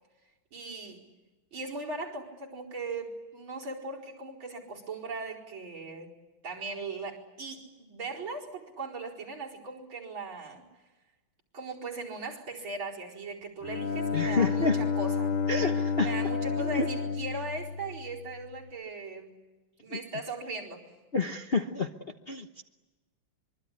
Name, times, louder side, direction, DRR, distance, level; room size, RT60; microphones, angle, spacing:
voice 1, 0.5-1.0 1.5-6.1 6.4-10.6 11.5-19.3 19.8-20.8, right 3 dB, 65° right, -3 dB, 5.4 m, -39 dB
Bowed string instrument, 13.6-18.5, left 5 dB, 75° left, 3.0 m, -30 dB
voice 2, 14.1-14.8 15.5-16.1 16.6-16.9 19.9-20.0 21.1-21.9 22.3-22.6, left 4 dB, 35° left, 4 dB, 1.0 m, -29 dB
25.0 x 23.5 x 10.0 m, 1.2 s
omnidirectional pair, 2.3 m